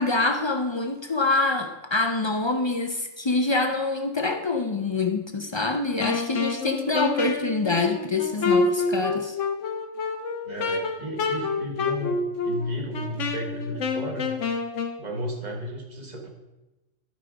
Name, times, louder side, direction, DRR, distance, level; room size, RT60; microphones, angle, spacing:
voice 1, 0.0-9.4, left 3 dB, 40° left, 6 dB, 0.4 m, -25 dB
Wind instrument woodwind instrument, 6.0-15.0, left 4 dB, 90° left, 1.3 m, -28 dB
voice 2, 10.4-14.3 15.0-16.3, equal, 35° right, 2 dB, 1.4 m, -33 dB
12.0 x 5.0 x 4.9 m, 1.0 s
omnidirectional pair, 1.2 m